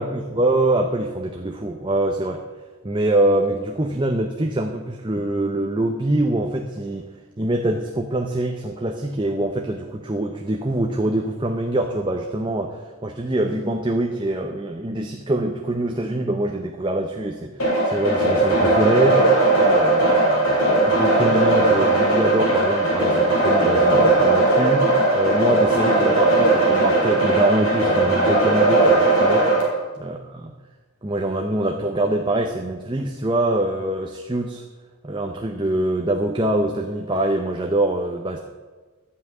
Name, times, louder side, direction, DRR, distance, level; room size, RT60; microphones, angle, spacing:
voice 1, 0.0-2.4 2.8-7.1 7.4-17.5 17.8-29.5 30.0-30.5 31.0-34.6 35.0-38.4, right 1 dB, 20° right, 2 dB, 0.6 m, -24 dB
sound 1, 17.6-29.6, right 2 dB, 75° left, 3.7 m, -18 dB
12.0 x 5.7 x 8.5 m, 1.3 s
head